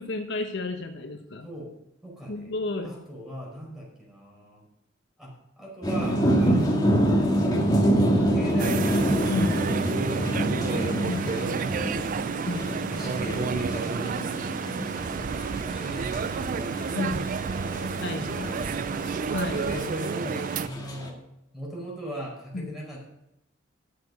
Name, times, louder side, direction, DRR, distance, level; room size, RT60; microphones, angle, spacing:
voice 1, 0.0-1.5 2.3-2.9 9.3-9.6 11.0-11.3 12.5-12.7 16.9-17.2 18.0-18.5 19.3-19.6 22.5-22.7, left 3 dB, 65° left, 5 dB, 1.0 m, -31 dB
voice 2, 2.0-2.5 2.8-4.6 5.2-9.2 9.4-10.9 11.2-12.4 12.9-14.6 15.8-16.7 17.7-18.0 18.4-19.1 19.5-21.2 21.5-23.0, equal, ahead, -3 dB, 4.9 m, -39 dB
sound 1, 5.8-21.1, equal, 20° left, 1.9 m, -27 dB
sound 2, 8.6-20.7, right 6 dB, 45° right, 0.4 m, -30 dB
13.0 x 6.8 x 5.4 m, 0.85 s
head